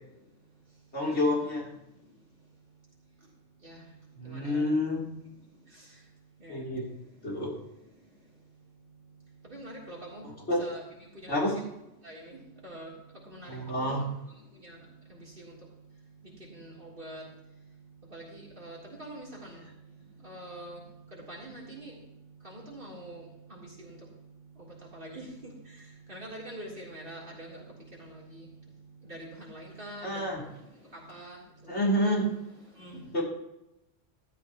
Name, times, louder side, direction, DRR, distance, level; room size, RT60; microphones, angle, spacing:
voice 1, 0.9-1.7 4.2-5.1 6.5-6.9 7.2-7.5 10.5-10.6 11.3-11.6 13.5-14.0 30.0-30.4 31.7-32.3 33.1-33.2, left 1 dB, 70° left, -4 dB, 3.7 m, -28 dB
voice 2, 4.3-4.6 6.4-6.6 9.5-10.2 10.6-10.8 11.2-11.6 12.0-12.4 12.6-12.9 13.3-14.0 14.6-14.8 15.4-15.5 16.5-17.2 18.1-19.5 20.2-20.8 21.3-21.9 22.4-23.2 23.5-23.9 24.9-25.3 26.1-27.6 28.0-28.4 29.1-30.3 31.1-31.4 32.8-33.0, right 1 dB, 50° right, -4 dB, 3.8 m, -44 dB
15.0 x 12.5 x 3.0 m, 0.87 s
omnidirectional pair, 1.2 m